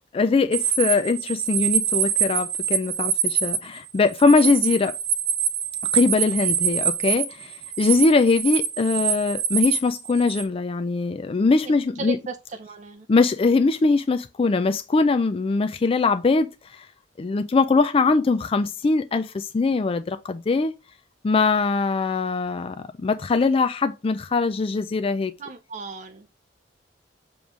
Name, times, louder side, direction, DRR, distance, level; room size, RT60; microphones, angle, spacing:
voice 1, 0.1-4.9 5.9-12.2 13.1-16.8 17.2-20.7 21.2-25.3, left 3 dB, 30° left, 0.4 m, -22 dB
sound 1, 0.5-10.4, right 7 dB, 75° right, 1.0 m, -25 dB
voice 2, 11.6-13.1 25.4-26.3, right 3 dB, 40° right, 0.6 m, -36 dB
7.2 x 3.1 x 4.9 m
head